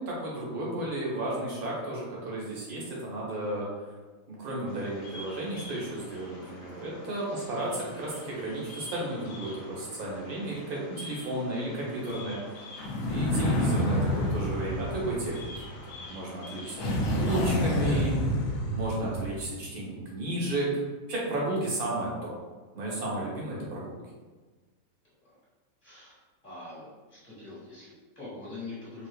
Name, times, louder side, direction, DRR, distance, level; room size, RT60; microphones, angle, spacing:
voice 1, 0.0-3.7 4.3-12.4 13.1-15.5 15.9-18.1 18.7-20.7 21.1-22.3 22.7-24.0, right 1 dB, 85° right, -5 dB, 1.5 m, -33 dB
Bird vocalization bird call bird song, 4.7-16.8, left 2 dB, 70° left, 1.4 m, -47 dB
sound 1, 12.8-15.9 16.8-19.5, left 1 dB, 85° left, 1.1 m, -28 dB
voice 2, 25.8-29.1, left 3 dB, 35° left, -9 dB, 1.4 m, -44 dB
3.5 x 2.8 x 2.3 m, 1.3 s
omnidirectional pair, 1.5 m